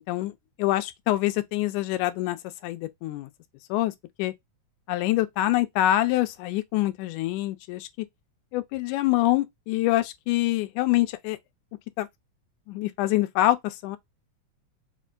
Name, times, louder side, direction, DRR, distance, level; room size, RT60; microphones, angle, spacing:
voice 1, 0.6-2.4 2.6-3.3 3.7-3.9 4.2-4.3 4.9-7.9 8.5-11.4 12.0-12.1 12.7-14.0, left 15 dB, 85° left, 2.0 m, -25 dB
5.2 x 2.2 x 2.4 m
omnidirectional pair, 3.4 m